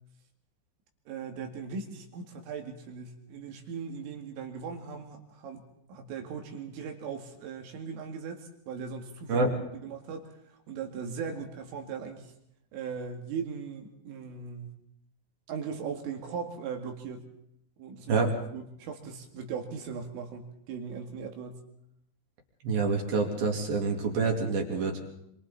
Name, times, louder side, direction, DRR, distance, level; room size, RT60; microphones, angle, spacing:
voice 1, 1.1-9.5 9.7-12.3 12.7-14.7 15.5-17.3 17.8-18.2 18.5-21.6, right 6 dB, 85° right, 3 dB, 4.9 m, -39 dB
voice 2, 22.6-25.0, right 4 dB, 55° right, 1 dB, 4.0 m, -27 dB
27.5 x 25.5 x 4.2 m, 0.75 s
omnidirectional pair, 5.6 m